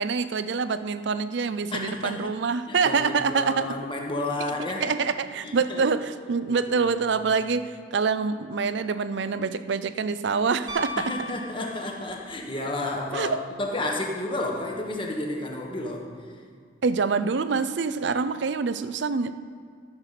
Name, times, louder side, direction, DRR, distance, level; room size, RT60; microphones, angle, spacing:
voice 1, 0.0-3.8 4.4-11.3 13.1-13.4 16.8-19.3, right 5 dB, 60° right, 13 dB, 0.5 m, -26 dB
voice 2, 1.7-2.3 2.7-4.8 5.4-5.8 11.0-13.3 13.6-16.0, left 2 dB, 25° left, 0 dB, 1.3 m, -31 dB
Piano, 10.7-12.3 14.6-14.7, left 1 dB, 20° right, 1.5 m, -36 dB
13.0 x 6.7 x 5.8 m, 2.3 s
head